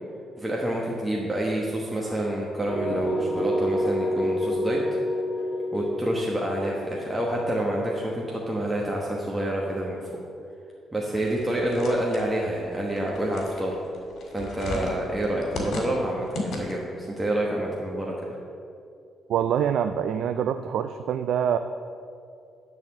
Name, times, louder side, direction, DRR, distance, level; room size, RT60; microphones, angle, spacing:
voice 1, 0.4-4.8 5.7-10.0 10.9-13.8 14.3-18.1, right 1 dB, 15° right, -3 dB, 1.1 m, -28 dB
sound 1, 2.7-8.5, equal, 50° left, 1.7 m, -28 dB
sound 2, 11.1-17.0, left 2 dB, 70° left, 2.0 m, -36 dB
voice 2, 19.3-21.6, right 8 dB, 75° right, 9 dB, 0.3 m, -25 dB
10.5 x 4.2 x 7.1 m, 2.5 s
cardioid pair, 90°, 0 cm